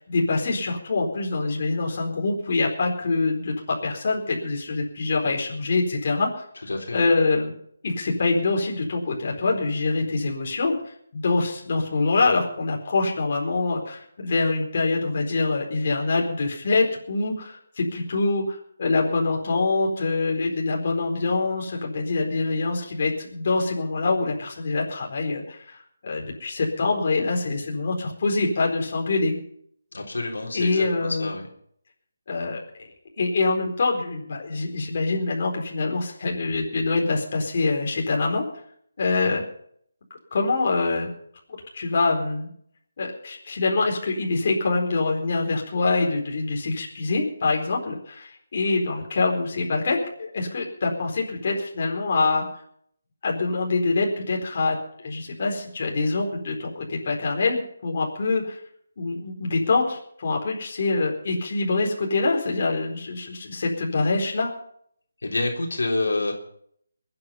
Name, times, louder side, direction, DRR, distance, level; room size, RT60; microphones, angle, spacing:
voice 1, 0.1-6.4 6.9-7.5 7.8-10.7 11.1-29.4 30.5-31.3 32.3-32.6 33.2-38.4 39.0-39.5 40.3-41.1 41.7-42.5 43.0-52.5 53.2-58.6 59.0-64.5, left 3 dB, 40° left, 0 dB, 4.4 m, -25 dB
voice 2, 6.7-7.1 29.9-31.5 65.2-66.3, left 2 dB, 85° left, 0 dB, 4.0 m, -27 dB
22.5 x 9.8 x 5.7 m, 0.67 s
hypercardioid pair, 170°, 0 cm